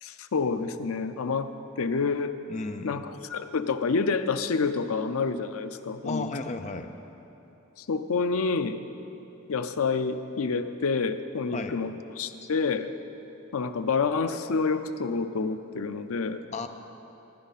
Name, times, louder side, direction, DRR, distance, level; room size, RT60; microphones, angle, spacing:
voice 1, 0.0-2.3 2.8-6.3 7.8-8.8 9.5-12.9 13.5-16.4, left 4 dB, 90° left, 10 dB, 0.5 m, -28 dB
voice 2, 2.5-3.0 6.0-6.9 11.5-12.1 12.4-12.5 16.5-16.7, left 3 dB, 35° left, 7 dB, 0.5 m, -34 dB
15.0 x 9.7 x 4.2 m, 3.0 s
head